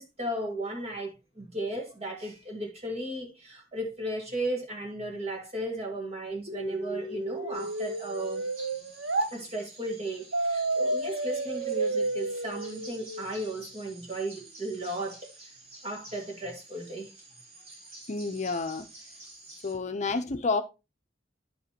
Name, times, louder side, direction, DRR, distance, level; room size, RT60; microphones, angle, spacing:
voice 1, 0.0-8.5 9.1-15.3 15.8-17.1, right 1 dB, 35° right, 1.8 m, -35 dB
sound 1, 6.5-9.3 10.3-13.3, right 2 dB, 85° right, 1.1 m, -31 dB
sound 2, 7.5-19.7, right 2 dB, 55° right, 4.3 m, -50 dB
voice 2, 18.1-18.9 19.6-20.6, left 3 dB, 40° left, 0.6 m, -29 dB
10.5 x 5.3 x 2.9 m
head